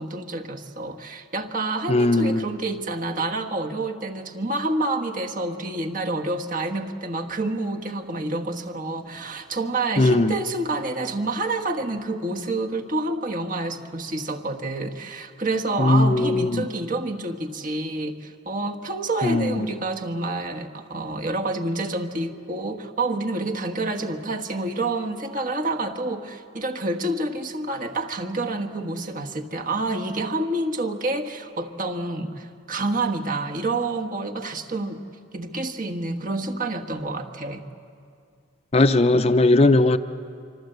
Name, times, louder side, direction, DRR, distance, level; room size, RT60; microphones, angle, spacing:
voice 1, 0.0-35.0 35.3-37.6, right 2 dB, 40° right, 4 dB, 1.5 m, -28 dB
voice 2, 1.9-2.4 10.0-10.3 15.8-16.7 19.2-19.7 38.7-40.0, left 2 dB, 30° left, 10 dB, 0.6 m, -18 dB
25.5 x 25.0 x 8.0 m, 2.4 s
head